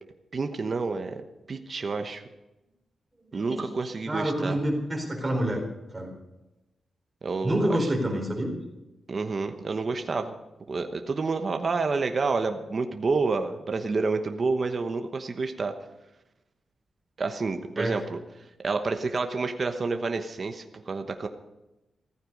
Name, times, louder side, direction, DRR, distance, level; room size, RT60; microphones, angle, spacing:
voice 1, 0.3-1.2 1.5-2.2 3.3-4.6 7.2-7.9 9.1-10.4 10.7-15.7 17.2-18.2 18.6-21.3, right 4 dB, 35° right, 6 dB, 1.1 m, -29 dB
voice 2, 4.1-5.6 5.9-6.1 7.4-8.5 17.8-18.0, right 1 dB, 15° right, 1 dB, 4.2 m, -27 dB
15.0 x 14.5 x 5.3 m, 0.99 s
wide cardioid pair, 150°, 0 cm